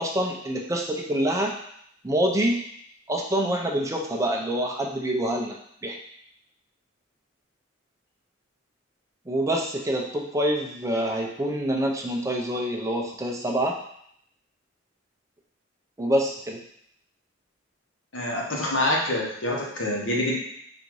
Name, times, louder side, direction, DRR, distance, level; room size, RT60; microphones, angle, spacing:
voice 1, 0.0-1.6 2.0-2.6 3.1-5.6 5.8-5.9 9.3-13.7 16.0-16.6, right 1 dB, 15° right, 0 dB, 0.6 m, -26 dB
voice 2, 18.1-20.4, left 1 dB, 75° left, -3 dB, 1.2 m, -26 dB
4.0 x 2.7 x 4.7 m, 0.68 s
head